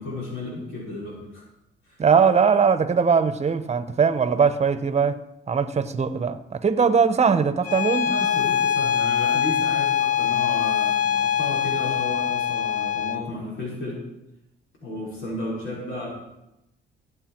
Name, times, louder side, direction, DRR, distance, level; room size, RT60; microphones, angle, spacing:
voice 1, 0.0-1.4 1.9-2.0 8.0-14.0 14.8-16.1, left 1 dB, 80° left, -5 dB, 5.0 m, -33 dB
voice 2, 2.0-5.2 5.5-8.1, right 6 dB, 35° right, 11 dB, 1.0 m, -20 dB
Bowed string instrument, 7.6-13.3, left 8 dB, 45° left, 1.0 m, -23 dB
17.0 x 8.0 x 4.6 m, 0.90 s
cardioid pair, 90°, 20 cm